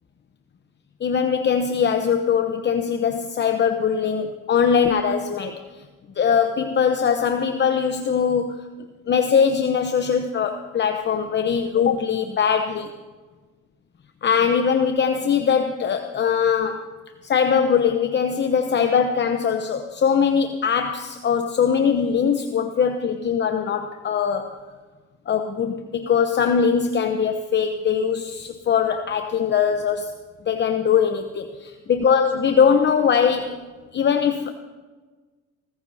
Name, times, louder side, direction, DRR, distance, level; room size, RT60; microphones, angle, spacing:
voice 1, 1.0-5.6 6.2-8.7 9.1-12.9 14.2-16.9 17.2-24.5 25.3-30.1 30.5-33.6 33.9-34.5, left 7 dB, 35° left, 6 dB, 0.9 m, -21 dB
24.0 x 14.5 x 2.8 m, 1.3 s
supercardioid pair, 80°, 30 cm